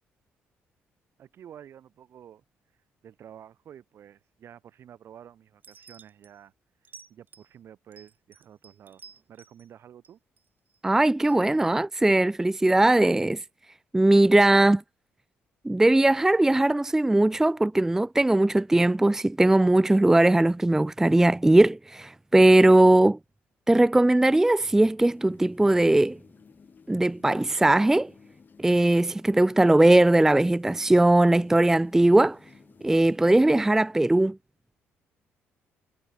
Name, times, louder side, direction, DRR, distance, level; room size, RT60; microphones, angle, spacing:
voice 1, 1.2-2.4 3.0-6.5 7.1-9.0 9.3-10.2, right 9 dB, 60° right, 2.5 m, -49 dB
sound 1, 5.6-6.3 6.8-7.5 7.9-9.7 10.0-10.8 11.3-11.4, right 6 dB, 40° right, 3.9 m, -52 dB
voice 2, 10.8-13.4 13.9-14.8 15.6-23.2 23.7-26.2 26.9-28.1 28.6-32.4 32.8-34.4, right 1 dB, 10° right, 0.4 m, -20 dB
sound 2, 25.1-33.4, left 6 dB, 40° left, 6.2 m, -55 dB
cardioid pair, 85°, 5 cm